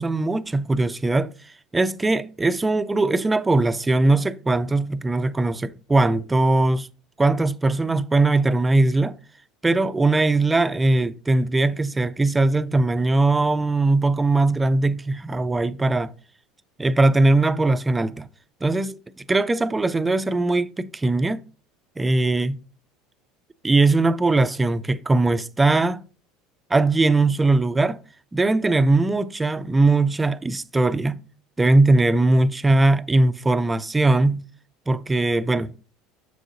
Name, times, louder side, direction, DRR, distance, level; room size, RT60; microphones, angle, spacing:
voice 1, 0.0-1.3 1.7-6.9 7.2-9.2 9.6-16.1 16.8-18.3 18.6-21.4 22.0-22.6 23.6-26.0 26.7-28.0 28.3-31.2 31.6-34.4 34.9-35.7, right 2 dB, 15° right, 0.4 m, -20 dB
6.9 x 6.3 x 2.5 m
hypercardioid pair, 75°, 0 cm